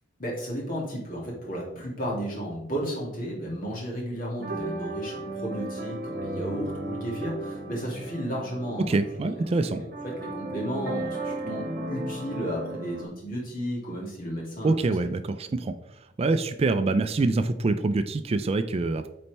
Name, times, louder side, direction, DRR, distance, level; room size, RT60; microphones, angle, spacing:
voice 1, 0.2-9.0 9.2-9.4 10.0-14.9, equal, 50° left, -3 dB, 2.4 m, -33 dB
sound 1, 4.4-13.0, right 2 dB, 55° right, 1.1 m, -35 dB
voice 2, 8.9-9.8 14.6-15.7 16.2-19.1, right 3 dB, 30° right, 10 dB, 0.3 m, -25 dB
8.4 x 4.2 x 3.3 m, 0.81 s
head